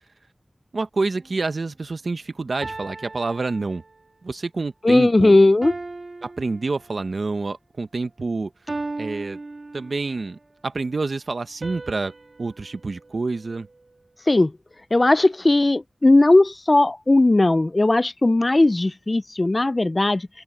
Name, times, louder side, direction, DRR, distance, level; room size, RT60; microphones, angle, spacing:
voice 1, 0.7-3.8 4.2-5.4 6.2-8.5 9.0-9.4 9.7-12.1 12.4-13.7, right 3 dB, 75° right, 0.8 m, -28 dB
sound 1, 1.1-1.5 2.6-4.2 5.6-7.3 8.7-10.3 11.6-14.0, right 3 dB, 60° right, 2.7 m, -37 dB
voice 2, 4.8-5.7 14.3-14.5 14.9-20.3, left 2 dB, 40° left, 0.5 m, -17 dB
wide cardioid pair, 75°, 0 cm